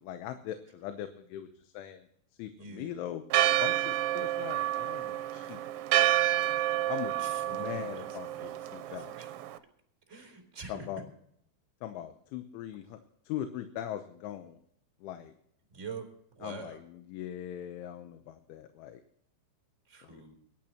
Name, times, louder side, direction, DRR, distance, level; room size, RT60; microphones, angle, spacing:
voice 1, 0.0-2.0 2.4-3.2 3.6-5.6 6.7-9.1 10.7-11.0 11.8-13.0 13.3-14.6 15.0-15.3 16.4-19.0 20.0-20.2, left 11 dB, 85° left, 7 dB, 3.3 m, -40 dB
voice 2, 2.5-3.0 7.2-8.6 8.8-9.3 10.1-10.9 15.7-16.8 19.9-20.3, right 4 dB, 20° right, 0 dB, 2.9 m, -45 dB
Church bell, 3.3-9.6, right 13 dB, 80° right, 2.9 m, -29 dB
23.5 x 12.0 x 2.9 m, 0.69 s
omnidirectional pair, 5.4 m